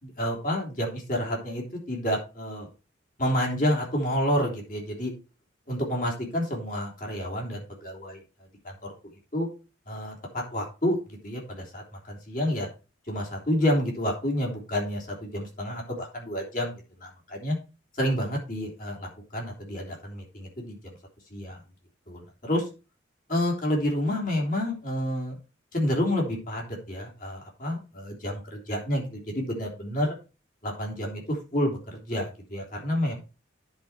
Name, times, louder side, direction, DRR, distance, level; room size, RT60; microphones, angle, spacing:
voice 1, 0.0-2.7 3.2-5.1 5.7-8.2 8.6-8.9 9.3-9.5 9.9-12.7 13.1-17.6 17.9-21.0 21.3-21.6 22.1-22.7 23.3-25.4 25.7-30.1 30.6-33.2, equal, 45° left, -1 dB, 3.3 m, -29 dB
10.5 x 5.1 x 4.4 m, 0.31 s
head